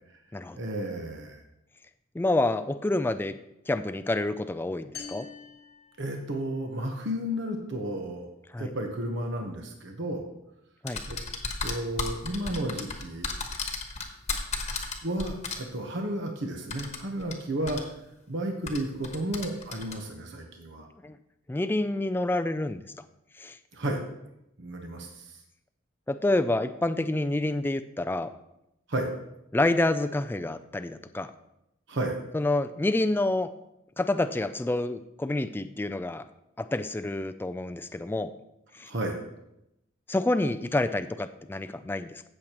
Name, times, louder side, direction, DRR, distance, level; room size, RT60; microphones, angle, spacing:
voice 1, 0.5-1.4 6.0-8.3 8.6-10.3 11.1-11.2 11.6-13.3 15.0-17.8 18.3-20.9 23.7-24.0 24.6-25.4 28.9-29.1 31.9-32.2 38.8-39.2, right 1 dB, 60° right, 3 dB, 1.1 m, -32 dB
voice 2, 2.1-3.3 3.7-5.3 8.5-8.7 10.8-11.0 21.0-21.2 21.5-22.8 23.4-23.6 26.1-28.3 29.5-31.3 32.3-33.5 34.0-36.2 36.6-38.3 38.7-38.9 40.1-42.2, left 2 dB, 10° left, 10 dB, 0.3 m, -28 dB
sound 1, 4.9-6.7, left 6 dB, 55° left, 1.1 m, -45 dB
sound 2, 10.9-15.6 16.7-17.3 17.7-17.8 18.7-20.0, left 4 dB, 35° left, 1.2 m, -33 dB
15.5 x 6.5 x 3.0 m, 0.85 s
head